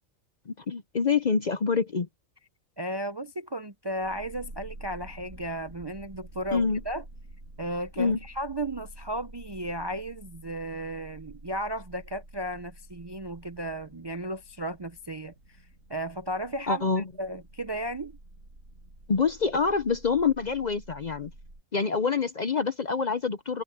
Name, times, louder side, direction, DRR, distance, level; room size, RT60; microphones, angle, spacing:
voice 1, 0.5-2.1 6.5-6.8 8.0-8.2 16.7-17.0 19.1-21.3 21.7-23.6, left 5 dB, 45° left, 0.6 m, -26 dB
voice 2, 2.8-7.0 7.6-15.3 15.9-16.9 17.2-18.1, right 1 dB, 30° right, 0.5 m, -34 dB
sound 1, 3.9-21.6, right 1 dB, 80° right, 8.1 m, -49 dB
omnidirectional pair, 1.4 m